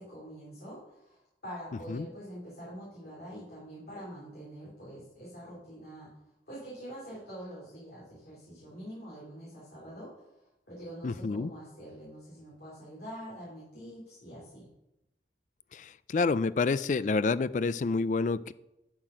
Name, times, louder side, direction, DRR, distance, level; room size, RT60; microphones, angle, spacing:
voice 1, 0.0-6.1 6.5-10.1 10.7-14.7, equal, 60° left, -7 dB, 3.3 m, -45 dB
voice 2, 11.0-11.5 15.7-18.5, left 4 dB, 45° left, 17 dB, 0.3 m, -28 dB
11.5 x 5.9 x 5.0 m, 0.91 s
head